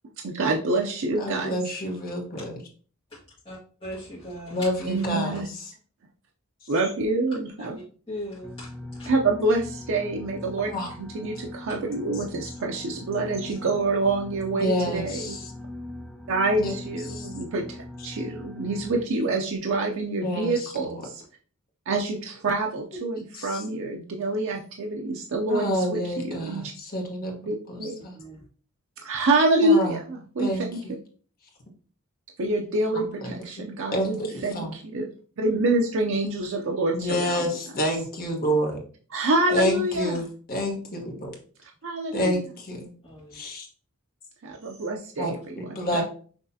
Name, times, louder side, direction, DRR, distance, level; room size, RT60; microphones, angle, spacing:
voice 1, 0.2-1.6 4.9-5.5 6.7-7.8 9.1-10.7 11.0-15.4 16.3-21.2 21.9-26.7 27.4-28.0 29.0-31.0 32.4-35.1 35.4-37.4 39.1-40.2 41.6-42.4 44.4-46.0, right 2 dB, 65° right, 1 dB, 0.5 m, -26 dB
voice 2, 1.2-2.5 4.5-5.4 10.7-10.9 14.5-15.4 16.6-16.7 17.1-17.3 20.2-20.7 23.3-23.6 25.5-28.1 29.6-30.0 30.4-30.9 32.9-33.4 33.9-34.7 36.9-38.8 39.5-41.3 42.1-42.9 43.3-43.7 45.2-46.0, equal, 45° left, 1 dB, 1.3 m, -29 dB
voice 3, 3.1-5.1 7.6-9.1 28.1-28.5 30.5-30.6 43.0-43.4, equal, 25° left, -9 dB, 1.7 m, -40 dB
sound 1, 8.4-19.0, left 1 dB, 5° left, 0.5 m, -40 dB
6.0 x 3.1 x 2.7 m, 0.42 s
head